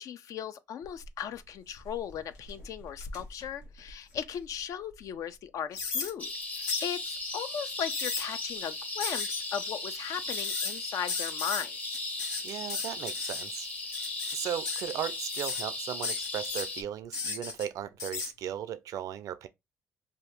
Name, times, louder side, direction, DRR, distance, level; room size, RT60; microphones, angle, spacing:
voice 1, 0.0-11.8, left 8 dB, 65° left, 0.4 m, -37 dB
sound 1, 0.8-1.3 1.8-4.4 4.9-5.0 5.7-6.1 6.7-6.9 7.7-8.2 9.0-9.4 10.3-10.8 11.1-11.6 11.9-13.4 13.9-14.3 14.6-15.0 15.3-15.6 16.0-16.7 17.1-17.6 18.0-18.3, left 5 dB, 85° left, 0.7 m, -35 dB
sound 2, 6.2-16.8, left 2 dB, 25° left, 0.7 m, -37 dB
voice 2, 12.4-13.7 14.3-19.5, right 10 dB, 70° right, 0.4 m, -37 dB
2.7 x 2.3 x 3.4 m
supercardioid pair, 65°, 6 cm